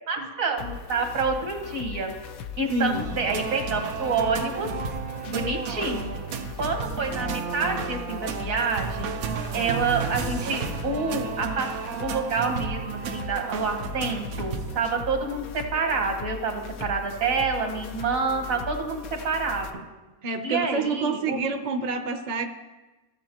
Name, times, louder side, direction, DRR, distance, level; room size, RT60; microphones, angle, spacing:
voice 1, 0.1-2.1 2.6-4.7 5.3-6.1 6.6-9.1 9.5-11.7 12.0-19.8 20.4-21.5, right 4 dB, 75° right, 3 dB, 1.6 m, -28 dB
sound 1, 0.6-19.7, left 7 dB, 90° left, 1.1 m, -39 dB
voice 2, 2.7-3.1 20.2-22.4, right 3 dB, 45° right, 6 dB, 0.6 m, -28 dB
sound 2, 2.9-14.8, right 6 dB, 90° right, 1.2 m, -33 dB
16.0 x 7.1 x 2.9 m, 1.2 s
omnidirectional pair, 1.4 m